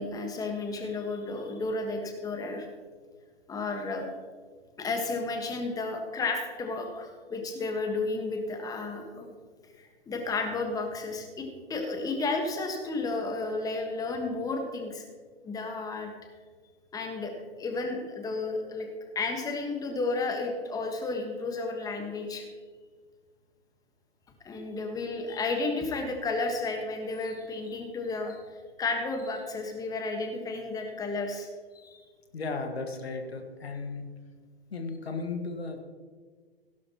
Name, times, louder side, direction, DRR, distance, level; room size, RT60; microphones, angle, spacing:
voice 1, 0.0-2.7 3.5-4.0 4.8-9.3 9.8-15.0 15.4-16.1 16.9-18.9 19.1-22.4 24.4-28.4 28.8-31.5 31.7-32.0, left 3 dB, 10° left, 4 dB, 1.5 m, -32 dB
voice 2, 32.3-34.1 34.7-35.8, left 3 dB, 70° left, 4 dB, 1.9 m, -35 dB
16.5 x 11.5 x 3.0 m, 1.5 s
figure-of-eight pair, 120°, 32 cm